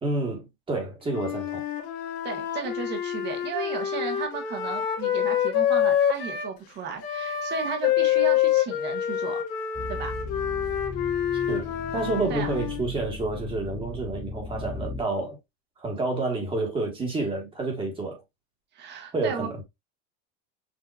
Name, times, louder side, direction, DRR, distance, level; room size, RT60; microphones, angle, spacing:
voice 1, 0.0-1.6 11.3-15.4 15.8-18.2 19.1-19.6, right 3 dB, 15° right, 1.6 m, -29 dB
Wind instrument woodwind instrument, 1.1-6.5 7.0-12.9, left 10 dB, 65° left, 1.6 m, -27 dB
voice 2, 2.2-9.4 9.9-10.2 12.3-12.5 18.7-19.5, right 6 dB, 35° right, 1.4 m, -34 dB
sound 1, 9.7-15.0, left 3 dB, 5° left, 0.3 m, -37 dB
6.4 x 2.8 x 2.4 m
cardioid pair, 160°, 30 cm